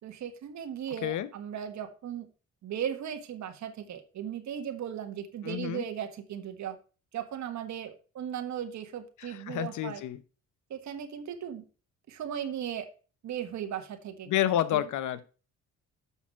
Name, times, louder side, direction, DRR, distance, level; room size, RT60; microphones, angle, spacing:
voice 1, 0.0-2.3 2.6-6.8 7.1-10.0 10.7-11.6 12.1-12.9 13.2-14.3 14.7-14.9, right 9 dB, 65° right, 7 dB, 1.5 m, -37 dB
voice 2, 5.4-5.8 9.2-10.2 14.3-15.3, left 12 dB, 80° left, 15 dB, 0.8 m, -29 dB
7.1 x 5.9 x 4.4 m, 0.35 s
cardioid pair, 90°, 30 cm